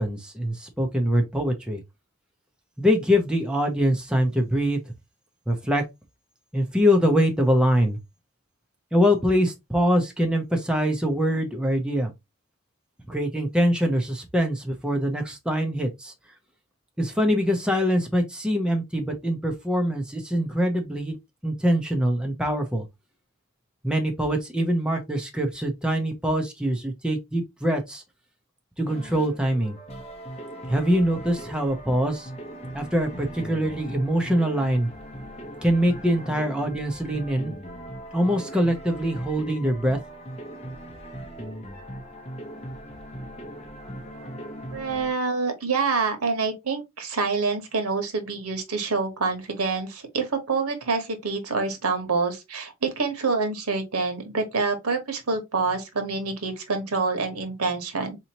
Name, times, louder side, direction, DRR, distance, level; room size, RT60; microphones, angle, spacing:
voice 1, 0.0-1.8 2.8-4.8 5.5-5.8 6.5-8.0 8.9-12.1 13.1-16.1 17.0-21.2 21.4-22.9 23.8-28.0 28.8-29.8 30.7-32.3 32.7-34.9 35.6-37.5 38.1-40.0, equal, 5° right, 0.6 m, -23 dB
sound 1, 28.9-45.1, equal, 30° left, 0.8 m, -39 dB
voice 2, 44.7-58.2, right 4 dB, 90° right, 1.1 m, -27 dB
4.0 x 2.9 x 2.9 m
head